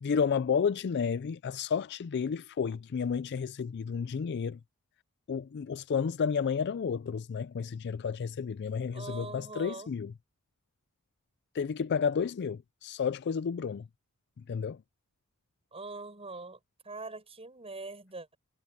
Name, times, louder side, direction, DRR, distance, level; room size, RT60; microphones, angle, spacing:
voice 1, 0.0-4.6 5.3-10.1 11.5-13.9 14.4-14.8, left 6 dB, 50° left, 0.4 m, -31 dB
voice 2, 8.9-9.9 15.7-16.6 16.8-18.4, right 3 dB, 25° right, 7.8 m, -42 dB
head